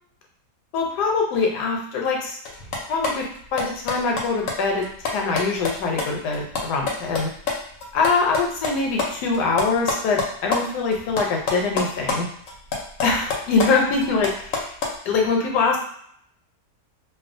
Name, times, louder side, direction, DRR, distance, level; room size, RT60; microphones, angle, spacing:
voice 1, 0.7-2.4 2.9-7.3 7.9-12.3 13.0-14.7 15.0-15.8, left 4 dB, 80° left, 0 dB, 1.2 m, -23 dB
sound 1, 2.5-7.5 7.8-10.6 10.9-12.2 12.5-14.9, left 4 dB, 65° left, 0.9 m, -27 dB
2.6 x 2.3 x 2.5 m, 0.65 s
omnidirectional pair, 1.8 m